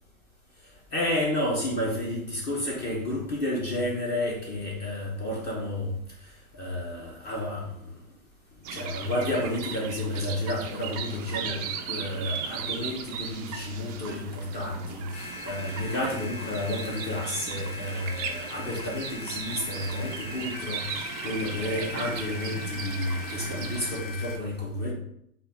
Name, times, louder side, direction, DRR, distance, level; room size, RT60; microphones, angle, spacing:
voice 1, 0.9-5.9 6.5-7.7 8.7-24.9, left 1 dB, 25° left, -2 dB, 0.8 m, -31 dB
sound 1, 8.6-24.0, right 7 dB, 30° right, 0.4 m, -37 dB
sound 2, 15.1-24.4, left 3 dB, 65° left, 1.2 m, -40 dB
4.1 x 2.5 x 4.0 m, 0.75 s
hypercardioid pair, 115°, 43 cm